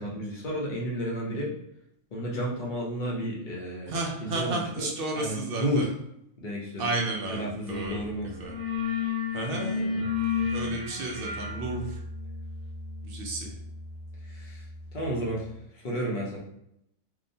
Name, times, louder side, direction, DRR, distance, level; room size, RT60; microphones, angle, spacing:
voice 1, 0.0-1.5 2.1-4.9 5.2-5.8 6.4-6.9 7.3-8.3 9.5-10.1 14.3-14.6 14.9-15.5 15.7-16.4, equal, 45° left, -3 dB, 0.7 m, -32 dB
voice 2, 3.9-5.9 6.8-8.5 9.3-9.9 10.5-12.0 13.0-13.5, right 2 dB, 60° right, 0 dB, 0.7 m, -32 dB
sound 1, 7.7-8.0 8.2-14.9, left 6 dB, 85° right, 1.2 m, -33 dB
2.9 x 2.1 x 2.6 m, 0.77 s
omnidirectional pair, 1.4 m